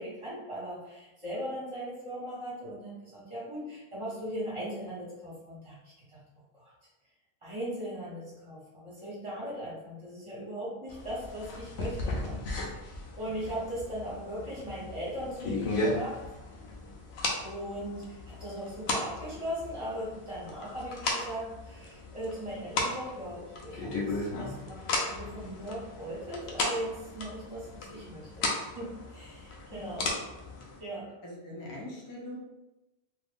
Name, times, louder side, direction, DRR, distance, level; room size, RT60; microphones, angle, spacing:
voice 1, 0.0-6.2 6.5-6.7 7.4-12.8 13.1-16.2 17.4-28.4 28.7-30.1 30.8-31.1, equal, 30° right, -8 dB, 1.4 m, -39 dB
sound 1, 10.9-30.8, left 2 dB, 80° left, 0.9 m, -36 dB
voice 2, 31.2-32.4, left 1 dB, 25° left, -3 dB, 0.5 m, -42 dB
2.6 x 2.5 x 3.4 m, 1.0 s
omnidirectional pair, 1.1 m